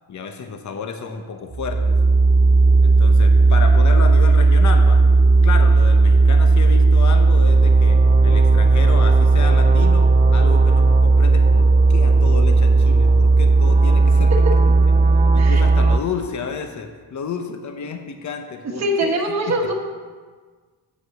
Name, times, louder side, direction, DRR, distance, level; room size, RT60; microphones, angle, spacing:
voice 1, 0.1-2.0 2.8-5.1 5.4-14.3 14.6-19.6, left 5 dB, 45° left, 6 dB, 0.8 m, -31 dB
sound 1, 1.5-16.0, right 3 dB, 20° right, 0.4 m, -14 dB
voice 2, 18.8-19.7, right 1 dB, 40° right, -1 dB, 1.3 m, -22 dB
8.2 x 5.2 x 6.4 m, 1.5 s
wide cardioid pair, 120°, 42 cm